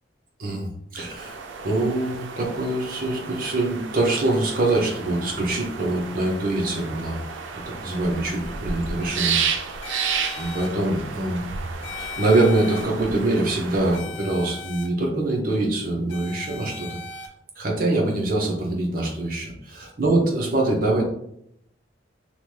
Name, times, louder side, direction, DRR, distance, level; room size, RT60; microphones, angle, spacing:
voice 1, 0.4-1.4 1.6-7.2 7.5-9.9 10.4-11.5 11.9-17.2 17.6-21.0, right 2 dB, 50° right, -1 dB, 0.7 m, -24 dB
sound 1, 1.2-14.0, right 6 dB, 85° right, 0.4 m, -32 dB
sound 2, 9.8-10.7 11.8-12.8 13.9-14.9 16.1-17.3, left 6 dB, 75° left, 0.5 m, -38 dB
3.0 x 2.2 x 3.2 m, 0.72 s
head